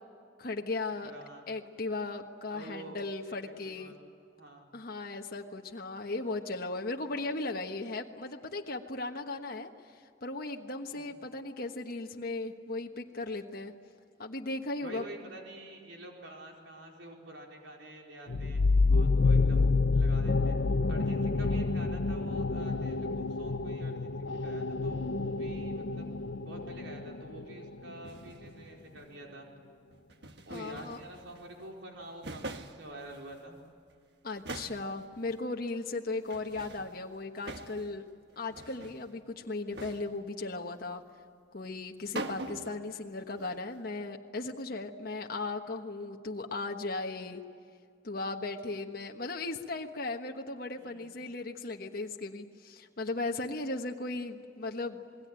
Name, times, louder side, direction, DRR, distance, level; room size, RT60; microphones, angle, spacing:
voice 1, 0.4-1.1 1.5-3.9 4.7-13.7 14.2-15.0 30.5-31.0 34.2-38.0 38.4-41.0 41.5-47.4 48.0-55.0, left 3 dB, 55° left, 2 dB, 1.3 m, -37 dB
voice 2, 1.0-1.5 2.5-3.4 3.6-4.0 4.4-4.7 10.9-11.1 14.8-18.6 18.9-20.6 20.9-26.1 26.4-29.5 30.5-33.6 50.7-51.1, right 1 dB, 90° right, 0 dB, 4.7 m, -48 dB
sound 1, 18.3-27.7, left 3 dB, 70° left, 0.7 m, -28 dB
sound 2, 28.0-29.2 29.9-31.7 32.0-33.6 33.9-34.0 34.4-35.4 36.3-38.1 38.3-39.1 39.7-40.3 41.8-41.9 42.1-42.9 43.2-43.8, right 2 dB, 65° right, 1.5 m, -45 dB
27.5 x 21.0 x 9.1 m, 2.3 s
head